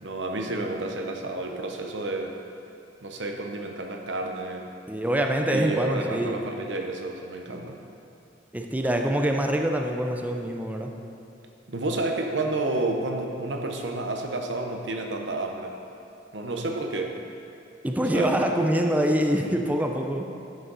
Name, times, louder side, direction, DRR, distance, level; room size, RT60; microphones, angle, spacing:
voice 1, 0.0-2.4 3.0-4.7 5.5-7.8 11.7-15.8 16.3-17.2 18.0-18.5, right 2 dB, 75° right, 3 dB, 1.0 m, -30 dB
voice 2, 4.9-6.4 8.5-10.9 17.8-20.2, right 1 dB, 10° right, 3 dB, 0.5 m, -25 dB
12.0 x 6.4 x 4.1 m, 2.6 s
head